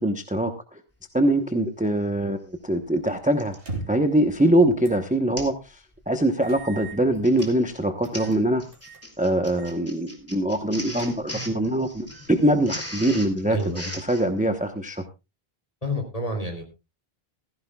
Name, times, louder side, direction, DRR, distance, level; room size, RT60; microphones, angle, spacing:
voice 1, 0.0-0.8 1.1-3.5 3.9-8.6 9.2-15.0, right 1 dB, 10° right, 6 dB, 0.9 m, -23 dB
Printer, 2.2-2.3 3.4-3.7 4.2-4.5 4.8-4.9 5.4-5.6 6.0-6.2 7.0-14.3, equal, 15° left, 2.7 m, -38 dB
sound 1, 3.5-4.1 4.8-5.1 5.5-5.6 6.4-7.5 8.0-8.4 8.7-9.1 9.5-9.8 10.1-10.2 10.7-11.5, right 3 dB, 70° right, 2.9 m, -39 dB
voice 2, 13.5-14.0 15.8-16.6, left 1 dB, 35° left, 4 dB, 3.2 m, -29 dB
15.5 x 15.0 x 2.3 m, 0.26 s
omnidirectional pair, 1.0 m